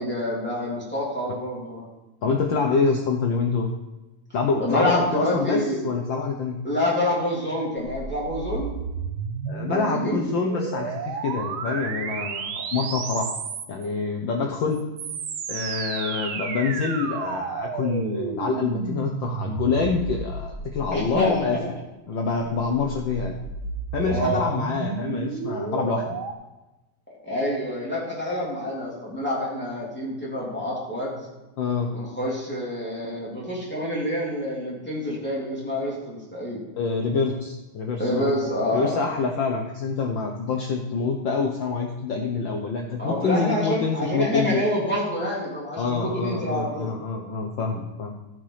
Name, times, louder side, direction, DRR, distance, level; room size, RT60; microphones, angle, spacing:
voice 1, 0.0-1.8 4.6-5.8 6.6-8.7 9.7-10.2 20.9-21.7 24.0-24.5 27.2-31.3 31.9-36.6 38.0-39.0 43.0-46.9, left 1 dB, 5° left, -6 dB, 2.9 m, -27 dB
voice 2, 2.2-3.7 4.3-6.6 9.5-13.3 13.7-14.8 15.5-21.6 22.1-23.4 23.9-26.2 31.6-31.9 36.8-38.3 38.7-44.6 45.8-48.1, left 4 dB, 85° left, 2 dB, 1.0 m, -26 dB
sound 1, 7.8-13.9 14.7-21.3 22.4-26.3, right 6 dB, 75° right, 1.2 m, -32 dB
14.5 x 6.1 x 5.0 m, 1.0 s
omnidirectional pair, 3.4 m